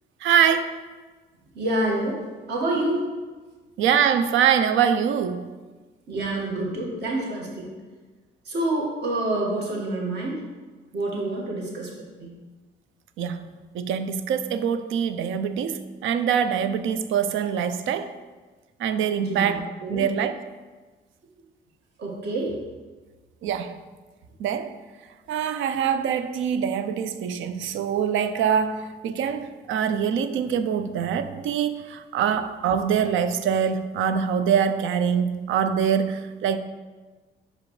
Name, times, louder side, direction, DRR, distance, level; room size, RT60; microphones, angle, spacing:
voice 1, 0.2-0.8 3.8-5.4 13.2-13.5 13.7-18.1 18.8-20.4 23.4-23.8 24.4-24.7 25.3-36.6, right 8 dB, 80° right, 10 dB, 0.5 m, -24 dB
voice 2, 1.5-2.2 2.5-3.1 6.1-7.7 8.4-10.4 10.9-12.3 19.2-20.1 22.0-22.6, right 1 dB, 60° right, -2 dB, 1.7 m, -27 dB
6.0 x 4.9 x 3.2 m, 1.3 s
cardioid pair, 90°, 20 cm